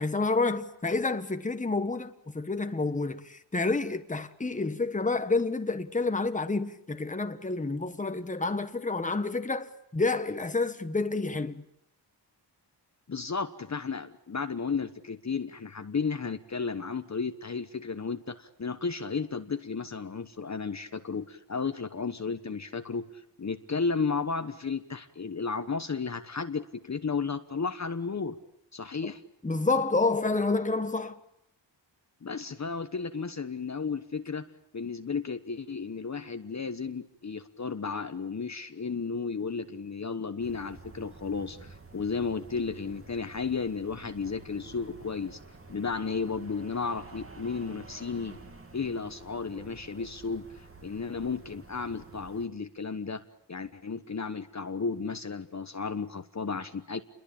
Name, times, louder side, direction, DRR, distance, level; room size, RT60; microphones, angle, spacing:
voice 1, 0.0-11.6 29.4-31.2, left 3 dB, 15° left, 1.3 m, -29 dB
voice 2, 13.1-23.0 23.4-28.4 28.7-29.2 32.2-34.5 34.7-45.4 45.7-48.4 48.7-53.2 53.5-57.0, left 5 dB, 40° left, 1.2 m, -33 dB
sound 1, 40.4-52.5, right 3 dB, 30° right, 2.7 m, -50 dB
29.5 x 22.5 x 8.7 m
wide cardioid pair, 140°, 44 cm